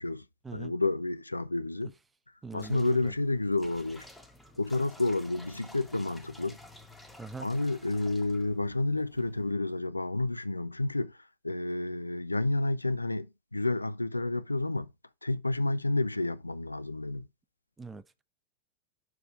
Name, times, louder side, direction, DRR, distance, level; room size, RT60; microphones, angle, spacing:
voice 1, 0.5-1.9 2.5-4.1 4.6-6.6 7.4-11.2 11.4-14.9 15.2-17.3, left 2 dB, 85° left, 0.4 m, -30 dB
voice 2, 2.4-3.1 7.2-7.5 17.8-18.2, right 4 dB, 15° right, 0.5 m, -42 dB
sound 1, 2.6-9.5, left 1 dB, 5° left, 1.0 m, -52 dB
6.3 x 4.7 x 3.6 m
figure-of-eight pair, 90°, 0 cm